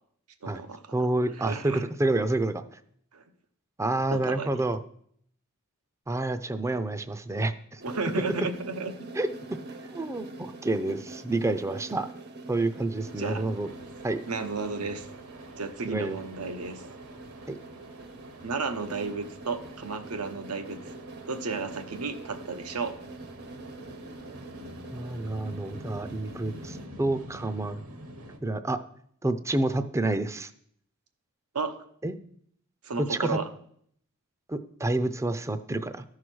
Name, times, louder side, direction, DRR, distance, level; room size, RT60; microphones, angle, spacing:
voice 1, 0.4-1.1 1.4-1.8 3.1-3.2 4.1-4.6 7.8-9.1 13.2-13.4 14.3-15.1 15.6-16.8 18.4-20.8 21.3-23.0 31.5-31.8 32.8-33.5, right 4 dB, 90° right, 8 dB, 0.9 m, -33 dB
voice 2, 0.9-2.6 3.8-4.8 6.1-7.8 9.1-9.3 9.8-12.1 12.5-13.7 14.0-14.2 15.8-16.2 17.5-17.6 24.9-27.8 28.4-28.8 29.2-30.5 32.0-32.2 33.0-33.4 34.5-36.0, right 2 dB, 15° right, 11 dB, 0.4 m, -28 dB
sound 1, 7.8-26.9, right 2 dB, 50° right, 0.8 m, -45 dB
sound 2, 13.0-28.4, right 1 dB, 70° right, 1.4 m, -47 dB
13.0 x 4.8 x 6.1 m, 0.66 s
head